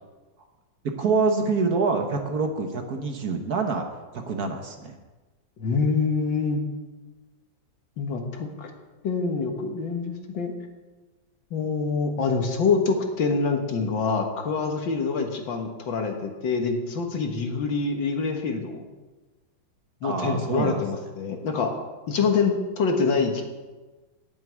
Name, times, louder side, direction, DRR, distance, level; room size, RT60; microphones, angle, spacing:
voice 1, 1.0-3.8 4.1-5.0 20.0-20.8, right 4 dB, 55° right, 4 dB, 1.5 m, -26 dB
voice 2, 5.6-6.6 8.0-8.7 9.0-10.5 11.5-18.8 20.0-21.7 22.1-23.4, left 4 dB, 70° left, 4 dB, 2.0 m, -25 dB
9.4 x 7.3 x 9.1 m, 1.2 s
omnidirectional pair, 2.1 m